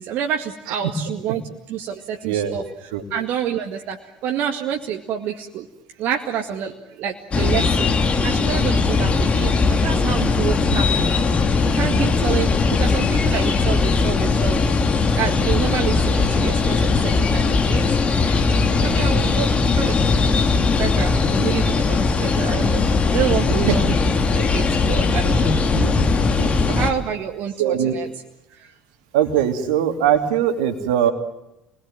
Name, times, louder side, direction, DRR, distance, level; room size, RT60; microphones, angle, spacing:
voice 1, 0.0-1.4 1.7-4.0 4.2-5.7 6.0-8.0 8.2-11.1 11.7-12.5 12.8-14.6 15.2-17.9 18.8-19.3 19.8-20.0 20.8-22.8 23.1-23.9 24.3-25.6 26.7-28.1, right 9 dB, 60° right, 3 dB, 2.0 m, -28 dB
voice 2, 2.2-2.6 2.9-3.0 11.9-12.2 12.7-12.8 18.9-19.5 23.7-23.8 25.7-25.9 26.4-26.5 27.6-27.9 29.1-31.1, right 10 dB, 75° right, 7 dB, 2.8 m, -22 dB
sound 1, 7.3-26.9, left 4 dB, 35° left, 3.0 m, -19 dB
28.5 x 21.0 x 9.1 m, 0.89 s
hypercardioid pair, 65°, 4 cm